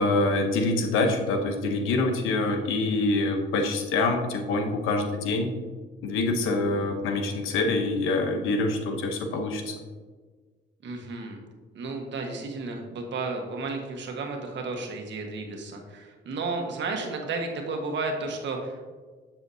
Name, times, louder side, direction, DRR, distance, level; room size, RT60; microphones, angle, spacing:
voice 1, 0.0-5.5 6.0-9.7, left 2 dB, 90° left, 5 dB, 0.9 m, -25 dB
voice 2, 10.8-11.4 11.7-18.9, right 3 dB, 65° right, 2 dB, 1.4 m, -33 dB
7.8 x 7.1 x 2.7 m, 1.4 s
cardioid pair, 90°, 20 cm